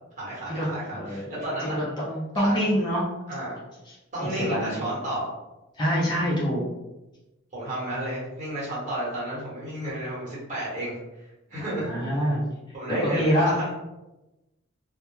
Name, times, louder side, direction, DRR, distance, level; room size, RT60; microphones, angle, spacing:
voice 1, 0.2-1.8 2.3-2.6 3.3-3.6 4.1-5.3 7.5-11.9 12.7-13.7, right 1 dB, 35° right, -7 dB, 1.1 m, -32 dB
voice 2, 0.9-1.2 1.6-3.1 3.9-4.0 4.2-4.9 5.8-6.7 11.5-12.4 13.0-13.6, equal, 20° left, -6 dB, 0.5 m, -25 dB
2.1 x 2.1 x 3.0 m, 1.0 s
head